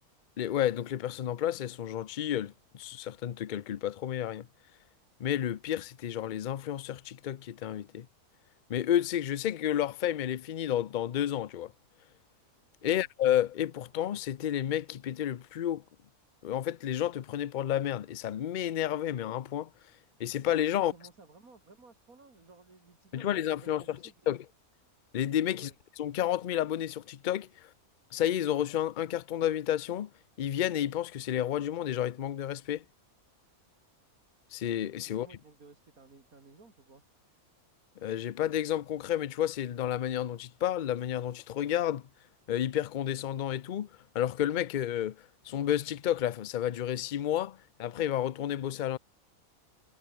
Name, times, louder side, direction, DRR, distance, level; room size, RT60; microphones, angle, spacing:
voice 1, 0.4-4.5 5.2-8.1 8.7-11.7 12.8-15.8 16.4-19.7 20.2-20.9 23.1-24.0 24.3-24.4 25.1-25.7 26.0-27.7 28.1-30.1 30.4-32.8 34.5-35.3 38.0-42.0 42.5-43.9 44.1-45.2 45.4-49.0, left 11 dB, 50° left, 0.6 m, -31 dB
voice 2, 20.7-24.3 25.5-25.8 35.1-37.0, right 3 dB, 85° right, 3.8 m, -56 dB
omnidirectional pair, 1.5 m